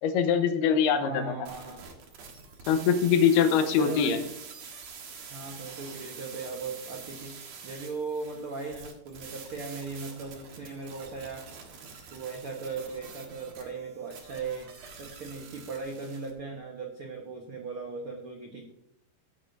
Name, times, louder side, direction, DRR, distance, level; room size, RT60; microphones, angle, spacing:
voice 1, 0.0-1.2 2.7-4.2, left 7 dB, 90° left, 8 dB, 2.9 m, -23 dB
voice 2, 1.0-1.8 3.6-4.3 5.3-11.4 12.1-14.7 15.0-18.6, right 4 dB, 75° right, 0 dB, 1.2 m, -38 dB
sound 1, 1.5-16.3, right 5 dB, 55° right, 2.2 m, -46 dB
13.5 x 9.9 x 2.7 m, 0.76 s
omnidirectional pair, 4.5 m